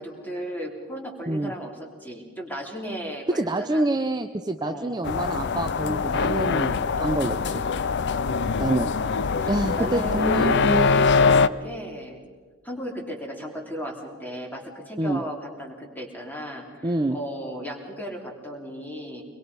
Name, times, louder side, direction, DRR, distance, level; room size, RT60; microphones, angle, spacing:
voice 1, 0.0-3.8 4.6-5.0 7.0-7.2 8.1-12.2 12.6-19.2, equal, 10° left, 1 dB, 3.1 m, -35 dB
voice 2, 3.3-7.6 8.6-8.9 9.5-10.9 15.0-15.2 16.8-17.2, right 2 dB, 20° right, 6 dB, 0.6 m, -26 dB
sound 1, 5.0-11.5, left 5 dB, 55° left, 0.6 m, -23 dB
24.0 x 21.5 x 5.4 m, 1.5 s
head